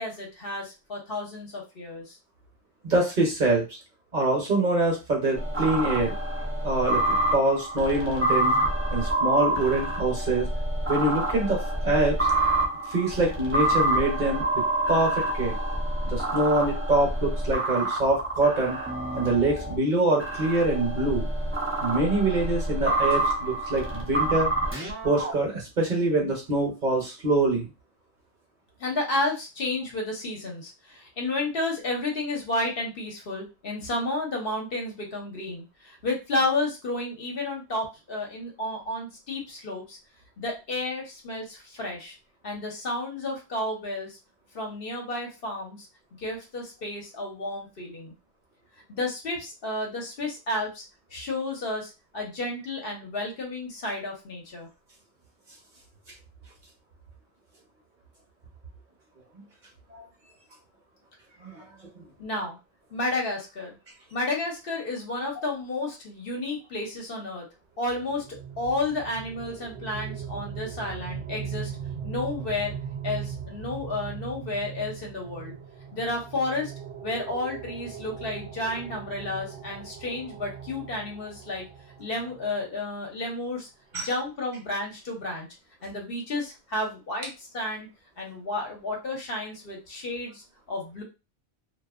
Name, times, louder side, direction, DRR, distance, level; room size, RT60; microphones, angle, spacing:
voice 1, 0.0-2.2 28.8-40.0 40.4-42.2 42.4-44.2 44.5-45.9 46.2-48.1 48.9-50.8 51.1-54.7 62.2-62.6 62.9-63.8 64.1-67.5 67.8-71.7 72.0-72.7 73.0-75.5 75.9-76.7 77.0-81.6 82.0-83.7 83.9-85.5 85.8-87.9 88.2-91.0, left 2 dB, 60° left, 0 dB, 0.9 m, -31 dB
voice 2, 2.8-3.8 4.1-6.1 6.6-8.6 8.9-10.5 10.9-12.2 12.9-14.4 14.9-15.6 16.0-18.8 19.1-21.3 21.8-24.5 25.0-27.7 59.9-60.0 61.4-61.6 61.9-62.0 83.9-84.1, right 2 dB, 45° right, -1 dB, 0.9 m, -25 dB
sound 1, 5.4-19.8 20.2-25.3, right 1 dB, 15° right, 0.5 m, -27 dB
sound 2, 67.9-82.6, right 7 dB, 75° right, 0.8 m, -39 dB
2.5 x 2.3 x 2.4 m, 0.28 s
omnidirectional pair, 1.2 m